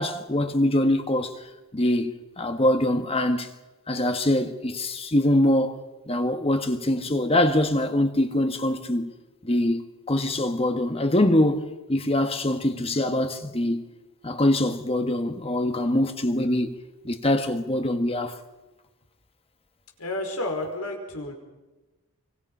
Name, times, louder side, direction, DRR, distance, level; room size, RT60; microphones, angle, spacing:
voice 1, 0.0-1.4 1.7-3.5 3.9-5.8 6.1-9.1 9.4-13.9 14.2-16.7 17.0-18.4, left 1 dB, 25° left, 1.4 m, -23 dB
voice 2, 20.0-21.3, left 1 dB, 90° left, 5.1 m, -31 dB
25.0 x 24.5 x 5.5 m
head